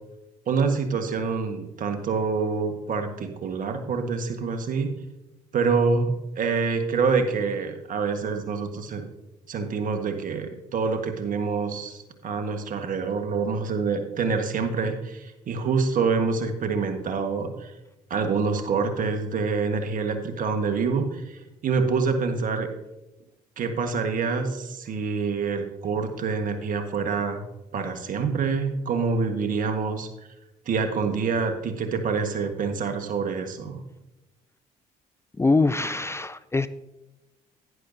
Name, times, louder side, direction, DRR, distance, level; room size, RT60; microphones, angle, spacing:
voice 1, 0.5-4.9 5.5-6.1 6.3-9.1 9.5-17.7 18.1-22.7 23.6-27.4 27.7-30.1 30.6-33.8, right 5 dB, 55° right, 6 dB, 1.5 m, -26 dB
voice 2, 35.4-36.7, left 3 dB, 15° left, 14 dB, 0.4 m, -23 dB
11.0 x 10.5 x 2.8 m, 0.97 s
hypercardioid pair, 55°, 16 cm